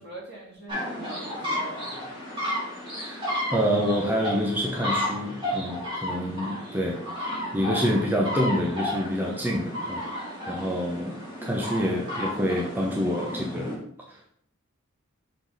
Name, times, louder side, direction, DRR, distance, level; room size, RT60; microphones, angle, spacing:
voice 1, 0.0-2.1, right 1 dB, 55° right, -4 dB, 2.4 m, -44 dB
sound 1, 0.7-13.7, left 1 dB, 25° right, 2.4 m, -33 dB
voice 2, 3.5-10.1 10.5-13.8 14.1-14.3, equal, 10° right, -2 dB, 0.7 m, -27 dB
6.7 x 3.9 x 4.0 m, 0.67 s
head